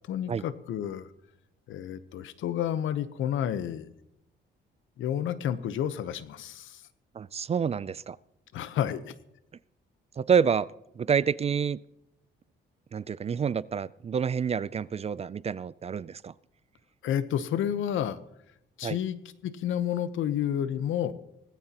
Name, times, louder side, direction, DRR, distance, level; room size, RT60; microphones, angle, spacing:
voice 1, 0.1-1.1 1.7-3.9 5.0-6.8 8.5-9.1 17.0-18.2 18.8-19.2 19.4-21.1, left 10 dB, 80° left, 13 dB, 0.9 m, -30 dB
voice 2, 7.2-8.2 10.2-11.8 12.9-16.3 18.8-19.0, right 7 dB, 30° right, 20 dB, 0.4 m, -28 dB
18.0 x 15.5 x 3.0 m, 0.82 s
cardioid pair, 90°, 20 cm